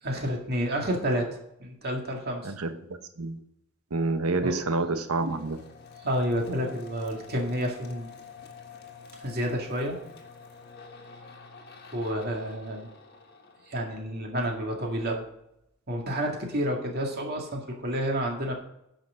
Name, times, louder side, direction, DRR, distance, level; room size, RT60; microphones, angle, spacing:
voice 1, 0.0-1.3 1.6-2.5 4.4-4.6 6.0-8.1 9.2-10.0 11.9-12.9 13.7-15.2 15.9-18.5, equal, 45° right, 1 dB, 2.0 m, -29 dB
voice 2, 2.4-2.7 3.2-3.4 3.9-5.6, right 3 dB, 80° right, 8 dB, 1.1 m, -28 dB
sound 1, 5.1-14.6, left 5 dB, 45° left, 1.6 m, -48 dB
10.0 x 5.9 x 6.4 m, 0.80 s
head